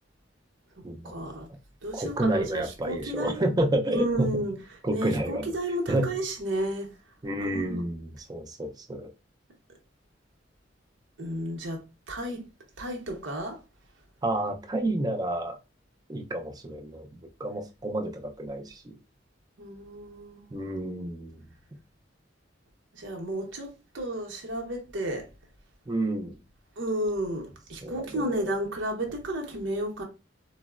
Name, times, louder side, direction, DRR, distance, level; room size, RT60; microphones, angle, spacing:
voice 1, 1.0-1.5 1.8-3.4 3.9-4.5 4.9-6.9 7.4-7.8 11.2-11.8 12.1-12.4 12.8-13.6 19.6-20.6 22.9-25.3 26.8-30.0, right 1 dB, 85° right, 0.8 m, -32 dB
voice 2, 1.9-4.3 4.8-5.5 5.9-6.1 7.2-9.1 14.2-15.6 16.1-17.1 17.4-18.9 20.5-21.4 25.9-26.4 27.8-28.5, right 1 dB, 20° right, 0.4 m, -30 dB
3.9 x 2.0 x 2.3 m
head